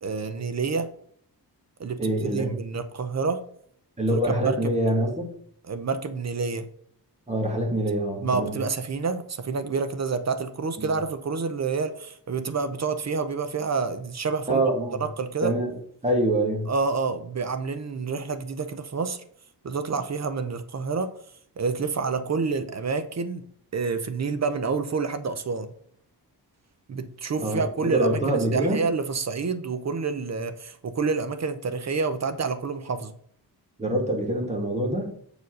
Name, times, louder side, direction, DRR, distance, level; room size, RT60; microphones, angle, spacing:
voice 1, 0.0-0.9 1.8-3.5 4.1-4.7 5.7-6.7 8.2-14.6 15.0-15.5 16.7-19.2 19.6-21.1 21.6-25.7 26.9-33.1, right 4 dB, 40° right, 11 dB, 0.7 m, -28 dB
voice 2, 2.0-2.5 4.0-5.3 7.3-8.5 10.8-10.9 14.5-15.0 15.4-15.8 16.0-16.7 27.4-28.8 33.8-35.1, right 1 dB, 15° right, 0 dB, 2.0 m, -25 dB
6.9 x 4.6 x 6.2 m, 0.63 s
wide cardioid pair, 140°, 39 cm